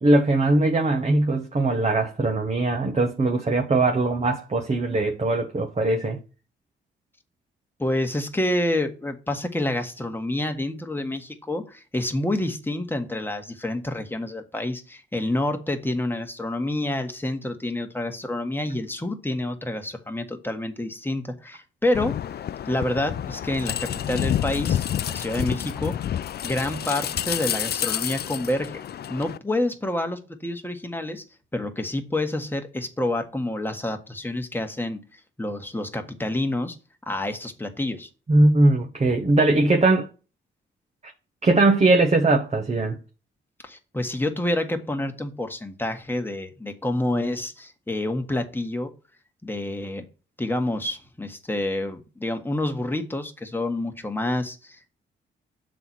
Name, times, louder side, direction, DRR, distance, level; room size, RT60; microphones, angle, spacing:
voice 1, 0.0-6.2 38.3-40.1 41.4-43.0, right 2 dB, 30° right, 1.2 m, -20 dB
voice 2, 7.8-26.1 26.4-28.8 29.1-31.2 31.5-36.8 37.1-38.1 43.6-48.9 49.4-50.0 50.4-54.9, left 1 dB, 10° left, 1.6 m, -28 dB
sound 1, 21.9-29.4, left 10 dB, 50° left, 0.4 m, -29 dB
6.8 x 4.2 x 6.2 m
supercardioid pair, 60°, 21 cm